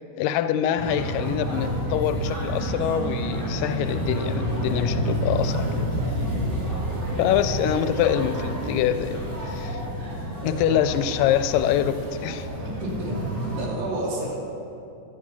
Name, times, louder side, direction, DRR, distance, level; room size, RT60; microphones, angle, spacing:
voice 1, 0.1-5.9 7.2-9.8 10.4-12.5, left 10 dB, 80° left, 2.1 m, -25 dB
sound 1, 0.8-13.7, equal, 55° right, 5.9 m, -29 dB
voice 2, 10.4-10.8 12.8-13.2 13.6-14.4, right 1 dB, 80° right, 4.3 m, -31 dB
14.5 x 11.5 x 5.9 m
omnidirectional pair, 4.0 m